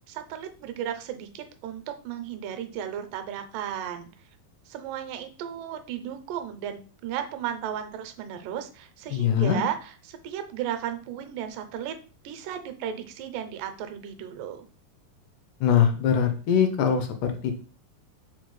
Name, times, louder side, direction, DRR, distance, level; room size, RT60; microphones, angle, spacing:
voice 1, 0.1-4.1 4.7-9.8 10.1-12.0 12.2-14.7, right 10 dB, 80° right, 7 dB, 2.2 m, -34 dB
voice 2, 9.1-9.6 15.6-17.5, left 8 dB, 80° left, 6 dB, 1.9 m, -22 dB
5.8 x 2.3 x 3.1 m, 0.38 s
omnidirectional pair, 4.0 m